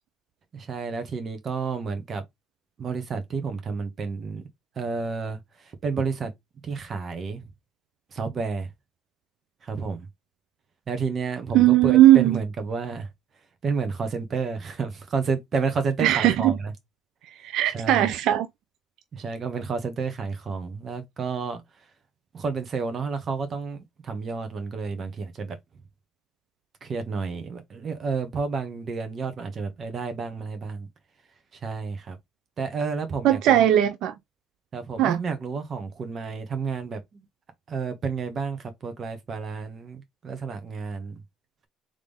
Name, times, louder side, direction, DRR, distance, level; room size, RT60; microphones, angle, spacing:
voice 1, 0.5-2.2 2.8-4.5 4.7-6.3 6.6-7.5 8.1-8.7 9.6-10.1 10.9-13.1 13.6-16.7 17.7-18.1 19.1-21.9 22.3-25.6 26.8-30.9 31.5-32.2 32.6-33.7 34.7-37.3 37.7-41.2, right 5 dB, 45° right, 1.5 m, -30 dB
voice 2, 11.5-12.4 16.0-16.6 17.4-18.5 33.2-34.1 35.0-35.2, right 13 dB, 70° right, 0.5 m, -18 dB
3.6 x 3.6 x 3.5 m
supercardioid pair, 75°, 0 cm